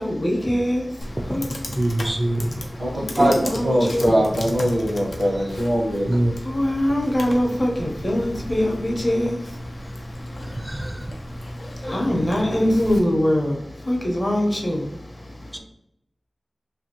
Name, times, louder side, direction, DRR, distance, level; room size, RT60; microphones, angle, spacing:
voice 1, 0.0-1.9 2.6-4.3 6.4-10.8 11.1-15.6, equal, 40° left, 0 dB, 0.7 m, -24 dB
Computer keyboard, 1.0-13.0, left 1 dB, 90° left, 0.5 m, -35 dB
voice 2, 1.8-2.5 3.2-3.3 6.1-6.3 10.5-11.1, right 1 dB, 20° right, 3 dB, 0.4 m, -24 dB
voice 3, 3.6-6.2, equal, 80° right, -3 dB, 0.9 m, -21 dB
2.7 x 2.6 x 2.8 m, 0.76 s
wide cardioid pair, 85°, 0 cm